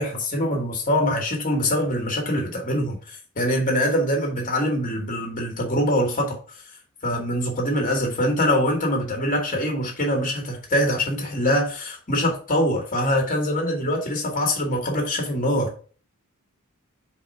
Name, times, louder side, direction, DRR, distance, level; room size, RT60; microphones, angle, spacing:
voice 1, 0.0-6.4 7.0-15.7, equal, 40° left, 2.2 m, -24 dB
5.1 x 4.3 x 5.5 m
head